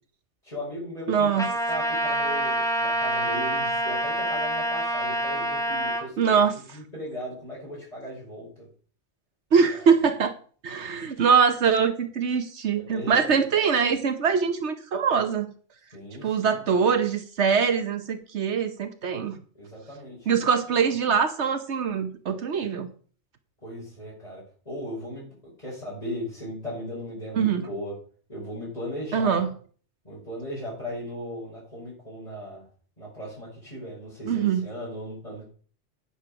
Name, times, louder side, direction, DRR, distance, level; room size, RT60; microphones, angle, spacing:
voice 1, 0.4-8.7 12.8-13.3 15.9-16.6 19.5-20.3 23.6-27.9 28.3-29.5 30.0-32.6 33.0-35.5, equal, 35° left, -8 dB, 6.3 m, -37 dB
voice 2, 1.1-1.5 6.2-6.6 9.5-10.3 10.6-15.5 16.2-19.4 20.3-22.9 27.3-27.7 29.1-29.5 34.3-34.7, right 6 dB, 75° right, 9 dB, 1.2 m, -23 dB
Trumpet, 1.4-6.0, right 1 dB, 5° left, 2.3 m, -26 dB
9.8 x 9.0 x 5.8 m, 0.43 s
omnidirectional pair, 1.2 m